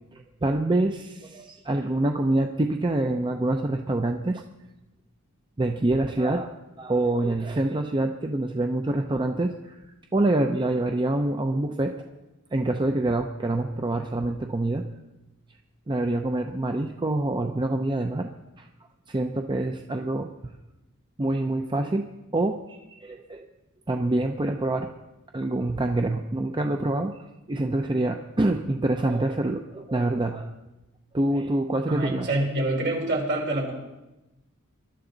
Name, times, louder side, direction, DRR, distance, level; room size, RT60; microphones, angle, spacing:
voice 1, 0.1-4.4 5.6-9.7 10.1-12.0 12.5-14.9 15.9-18.3 18.6-18.7 19.1-20.6 21.2-22.1 22.3-23.5 23.9-24.9 25.3-30.5 31.1-32.3, right 2 dB, 20° right, 4 dB, 0.6 m, -26 dB
voice 2, 31.9-33.7, right 1 dB, 55° right, -1 dB, 4.0 m, -26 dB
22.5 x 12.0 x 3.9 m, 1.0 s
head